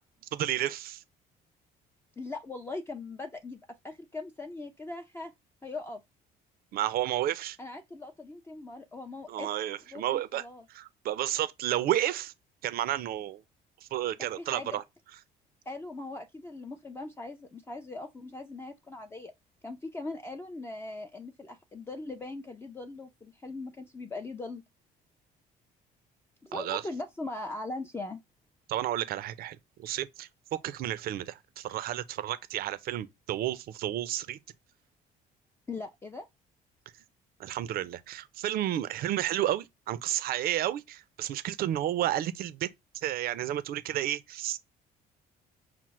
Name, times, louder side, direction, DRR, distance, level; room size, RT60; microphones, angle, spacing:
voice 1, 0.3-1.0 6.7-7.6 9.3-10.4 10.7-12.3 12.6-13.4 13.9-14.8 26.5-26.8 28.7-34.4 37.4-42.7 43.0-44.6, right 12 dB, 65° right, 0.5 m, -31 dB
voice 2, 2.2-5.3 5.6-6.0 7.6-9.5 9.9-10.6 14.2-14.8 15.7-19.3 19.6-24.6 26.4-28.2 35.7-36.3, left 2 dB, 15° left, 0.4 m, -40 dB
5.8 x 2.0 x 3.0 m
cardioid pair, 110°, 17 cm